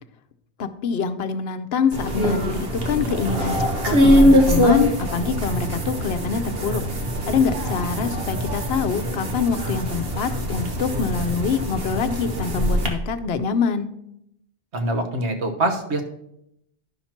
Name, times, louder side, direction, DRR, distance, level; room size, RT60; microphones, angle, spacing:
voice 1, 0.6-6.8 7.3-13.9, left 6 dB, 70° left, 10 dB, 0.9 m, -25 dB
sound 1, 1.9-12.9, equal, 60° right, 1.5 m, -22 dB
voice 2, 14.7-16.0, right 2 dB, 80° right, 4 dB, 1.4 m, -24 dB
11.0 x 5.8 x 4.4 m, 0.79 s
omnidirectional pair, 1.1 m